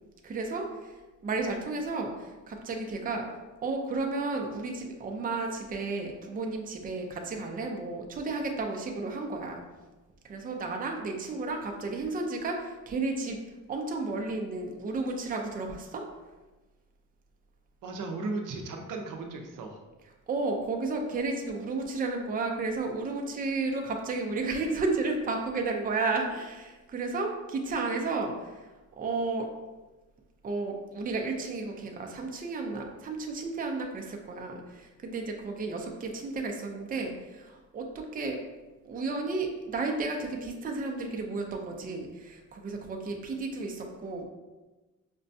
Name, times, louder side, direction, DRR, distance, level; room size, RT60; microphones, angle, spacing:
voice 1, 0.2-1.0 1.2-3.3 3.6-9.6 10.2-13.4 13.7-16.1 20.3-28.6 29.0-29.5 30.4-38.4 38.8-44.3, right 3 dB, 25° right, 2 dB, 0.5 m, -32 dB
voice 2, 17.8-19.8, right 3 dB, 75° right, 2 dB, 0.6 m, -36 dB
5.2 x 2.2 x 2.6 m, 1.2 s
cardioid pair, 110°, 32 cm